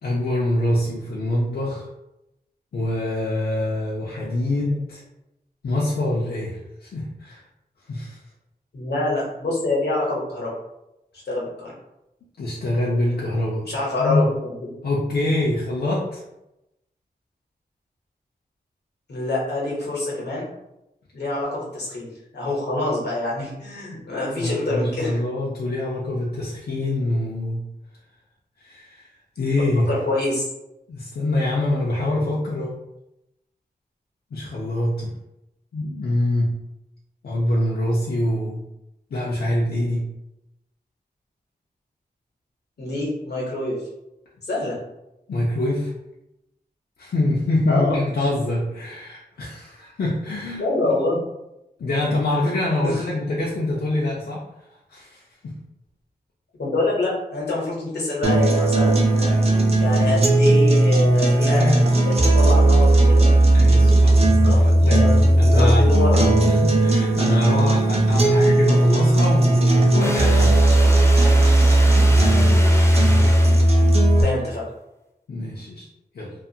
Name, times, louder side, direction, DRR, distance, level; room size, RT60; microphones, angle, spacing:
voice 1, 0.0-1.9 2.7-5.0 5.6-7.4 7.9-8.2 12.4-13.6 14.0-14.2 14.8-16.2 24.4-27.6 28.6-29.1 29.4-29.9 30.9-32.8 34.3-35.1 35.7-36.5 37.2-38.6 39.1-40.0 45.3-45.9 47.0-50.6 51.8-54.4 54.9-55.5 61.1-61.9 63.0-63.1 63.5-64.2 64.5-65.0 65.3-65.9 66.5-70.7 75.3-75.8 76.1-76.3, left 1 dB, 70° left, -5 dB, 0.5 m, -25 dB
voice 2, 8.7-10.5 11.3-11.7 13.7-14.7 19.1-20.5 21.1-25.2 29.9-30.4 42.8-43.9 44.4-44.8 47.7-48.0 50.6-51.2 52.8-53.1 56.6-59.4 59.8-63.4 64.4-66.4 74.2-74.6, left 2 dB, 85° left, -4 dB, 0.9 m, -26 dB
sound 1, 58.2-74.2, right 1 dB, 40° right, 0.5 m, -16 dB
sound 2, 70.0-74.0, equal, 15° left, 0.5 m, -30 dB
2.4 x 2.4 x 2.7 m, 0.91 s
wide cardioid pair, 100°, 17 cm